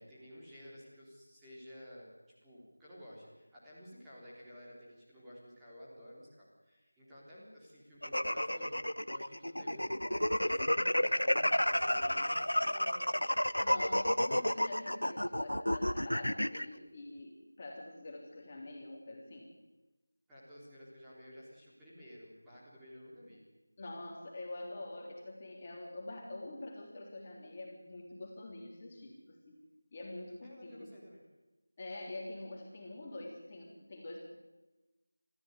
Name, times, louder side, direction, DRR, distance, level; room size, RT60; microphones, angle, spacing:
voice 1, 0.0-2.1 2.4-13.7 20.3-23.4 30.4-31.2, equal, 5° right, -9 dB, 4.0 m, -53 dB
sound 1, 8.0-16.7, left 1 dB, 85° left, 0.9 m, -31 dB
voice 2, 13.6-19.5 23.8-29.6 29.9-30.9 31.8-34.2, left 2 dB, 25° left, -1 dB, 3.5 m, -46 dB
22.0 x 14.5 x 9.8 m, 1.1 s
figure-of-eight pair, 170°, 0 cm